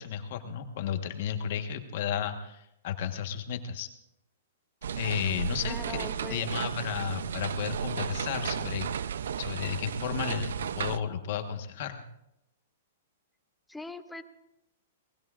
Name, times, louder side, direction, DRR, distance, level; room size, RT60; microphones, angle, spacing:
voice 1, 0.0-3.9 5.0-8.9 9.4-12.0, left 8 dB, 50° left, 6 dB, 1.3 m, -33 dB
sound 1, 4.8-11.0, right 7 dB, 80° right, 0.5 m, -34 dB
voice 2, 5.6-6.5 13.7-14.2, left 1 dB, 5° left, 9 dB, 0.6 m, -41 dB
27.5 x 19.5 x 2.5 m, 0.83 s
hypercardioid pair, 165°, 0 cm